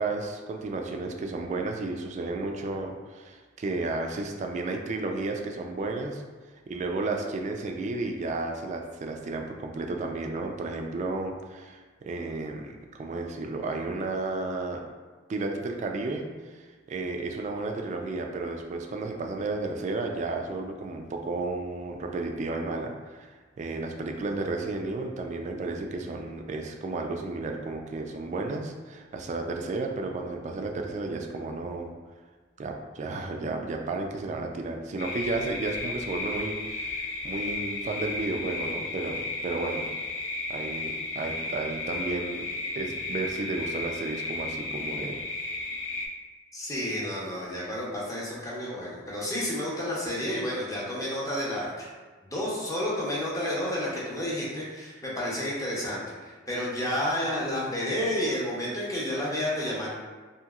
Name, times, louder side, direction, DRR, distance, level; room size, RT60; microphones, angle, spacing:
voice 1, 0.0-6.2 6.7-14.8 15.3-16.3 16.9-23.3 23.6-31.9 32.6-39.9 40.5-42.5 42.8-45.2, right 3 dB, 40° right, 3 dB, 0.3 m, -32 dB
sound 1, 35.0-46.1, left 2 dB, 70° left, 0.4 m, -34 dB
voice 2, 46.5-51.9 52.2-56.0 56.5-59.9, left 1 dB, 20° left, -6 dB, 0.7 m, -30 dB
2.8 x 2.8 x 2.3 m, 1.4 s
head